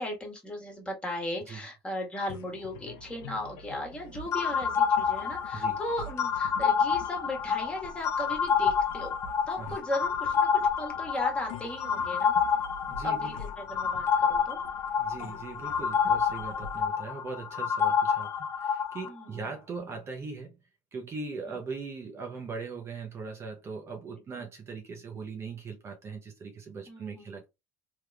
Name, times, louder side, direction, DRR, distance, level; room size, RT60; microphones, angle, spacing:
voice 1, 0.0-9.1 9.5-12.3 13.0-14.6 15.2-15.4 19.1-19.4 24.4-24.5 26.9-27.3, left 1 dB, 15° left, 1.6 m, -37 dB
sound 1, 2.3-17.9, left 2 dB, 75° left, 0.8 m, -47 dB
sound 2, 4.3-19.1, left 7 dB, 35° left, 0.4 m, -28 dB
voice 2, 12.9-13.4 15.0-20.6 20.9-27.5, right 4 dB, 30° right, 0.8 m, -40 dB
3.4 x 3.0 x 2.4 m
supercardioid pair, 105°, 8 cm